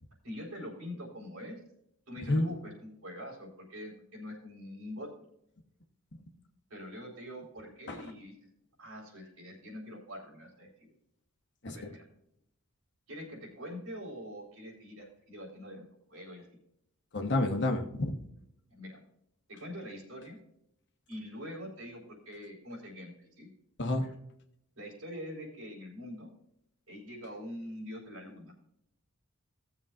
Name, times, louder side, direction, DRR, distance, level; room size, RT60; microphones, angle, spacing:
voice 1, 0.2-1.6 2.1-5.1 6.7-8.4 8.8-10.9 11.6-12.0 13.1-16.4 18.7-19.0 19.5-20.4 21.1-23.5 23.9-24.1 24.8-26.3 26.9-28.5, equal, 70° right, -2 dB, 4.2 m, -44 dB
voice 2, 17.1-18.2 23.8-24.1, left 2 dB, 55° left, 4 dB, 1.2 m, -29 dB
18.0 x 7.3 x 2.5 m, 0.77 s
head